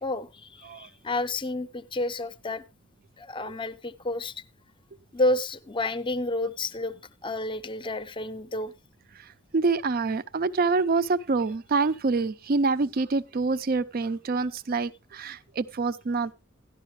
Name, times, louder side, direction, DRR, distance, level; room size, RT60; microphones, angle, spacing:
voice 1, 0.0-2.6 3.2-4.4 5.1-6.9 7.2-8.7, left 2 dB, 25° left, 0.6 m, -30 dB
voice 2, 9.2-16.3, right 4 dB, 45° right, 0.5 m, -26 dB
12.5 x 11.5 x 3.1 m
head